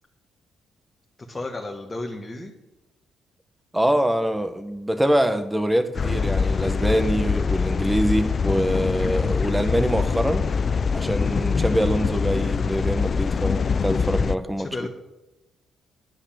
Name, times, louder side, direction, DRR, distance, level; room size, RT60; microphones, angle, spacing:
voice 1, 1.3-2.5 14.6-14.9, left 2 dB, 20° left, 1.5 m, -32 dB
voice 2, 3.7-10.5 10.9-14.9, equal, 10° right, 1.1 m, -24 dB
sound 1, 5.9-14.4, left 5 dB, 40° left, 0.5 m, -24 dB
9.7 x 9.4 x 7.5 m
cardioid pair, 90°, 0 cm